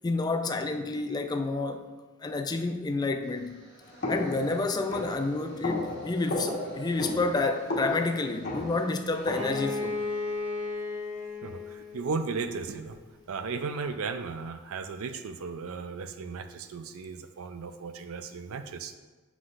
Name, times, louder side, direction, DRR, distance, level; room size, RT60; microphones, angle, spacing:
voice 1, 0.0-1.9 2.2-3.7 4.1-10.0, left 3 dB, 20° left, 5 dB, 0.3 m, -29 dB
sound 1, 3.2-13.3, right 1 dB, 40° right, 1.9 m, -52 dB
sound 2, 4.0-9.8, left 2 dB, 50° left, 1.3 m, -34 dB
Bowed string instrument, 9.3-13.0, left 3 dB, 55° right, 1.8 m, -35 dB
voice 2, 11.4-13.0 13.3-18.9, right 4 dB, 80° right, 9 dB, 0.5 m, -35 dB
7.8 x 5.9 x 2.5 m, 1.3 s
head